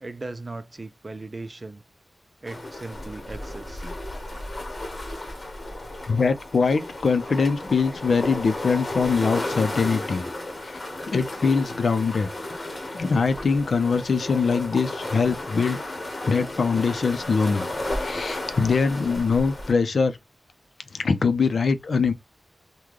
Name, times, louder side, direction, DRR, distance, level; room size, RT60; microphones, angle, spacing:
voice 1, 0.0-1.8 2.4-3.8, right 2 dB, 35° right, 0.4 m, -38 dB
sound 1, 2.4-19.7, left 1 dB, 40° left, 1.1 m, -33 dB
voice 2, 6.1-10.3 10.6-10.8 11.1-12.3 12.9-15.8 16.3-17.7 17.9-20.2 20.9-22.1, left 5 dB, 80° left, 0.5 m, -23 dB
3.7 x 2.2 x 3.1 m
wide cardioid pair, 110°, 0 cm